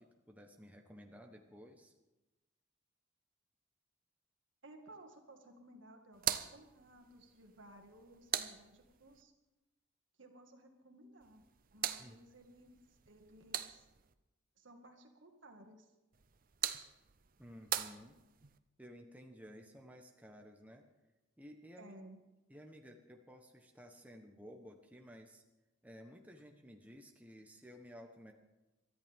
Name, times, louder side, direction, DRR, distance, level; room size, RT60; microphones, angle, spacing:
voice 1, 0.0-1.9 12.0-12.2 17.4-18.2 18.8-20.8 21.4-22.0 22.5-25.4 25.8-28.3, equal, 10° right, 2 dB, 1.1 m, -55 dB
voice 2, 4.6-9.3 10.2-11.5 11.7-13.9 14.6-15.9 21.8-22.2, right 1 dB, 70° right, 4 dB, 2.0 m, -58 dB
sound 1, 6.1-9.2 11.2-14.1 16.1-18.6, right 10 dB, 45° right, 0.7 m, -42 dB
22.5 x 13.5 x 3.6 m, 1.0 s
head